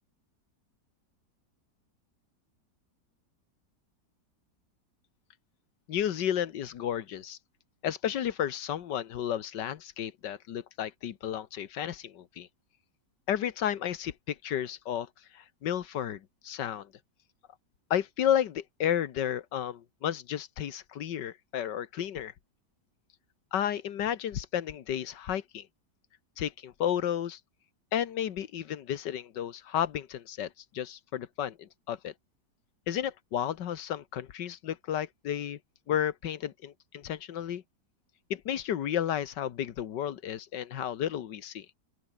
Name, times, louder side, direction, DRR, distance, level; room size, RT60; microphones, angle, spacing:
voice 1, 5.9-7.4 7.8-12.5 13.3-16.9 17.9-22.3 23.5-25.7 26.4-27.4 27.9-32.1 32.9-35.6 35.9-37.6 38.3-41.7, left 10 dB, 85° left, 1.8 m, -32 dB
open air
omnidirectional pair, 1.8 m